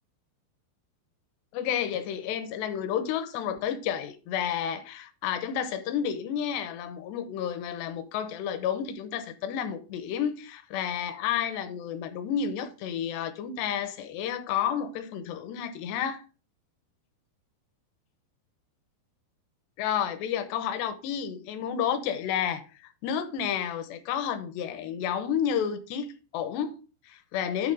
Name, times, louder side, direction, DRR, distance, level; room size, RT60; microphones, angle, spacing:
voice 1, 1.5-16.2 19.8-22.6 23.0-27.7, left 8 dB, 80° left, 2.9 m, -31 dB
10.5 x 3.5 x 4.8 m
omnidirectional pair, 5.0 m